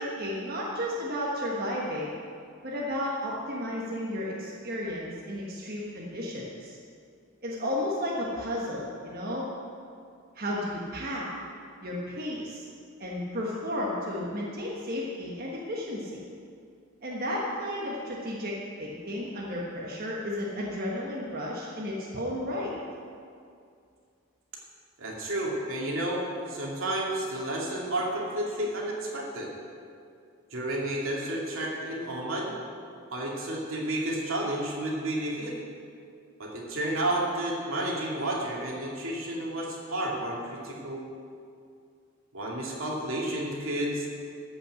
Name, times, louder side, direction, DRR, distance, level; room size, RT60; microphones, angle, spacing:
voice 1, 0.0-2.2 2.6-6.8 7.4-9.5 10.3-11.3 11.8-12.6 13.0-16.2 17.0-22.7, left 1 dB, 45° right, -4 dB, 1.5 m, -33 dB
voice 2, 25.0-29.5 30.5-32.5 33.1-35.5 36.4-41.0 42.3-44.1, right 1 dB, 75° right, -3 dB, 2.5 m, -31 dB
14.0 x 5.9 x 7.8 m, 2.3 s
head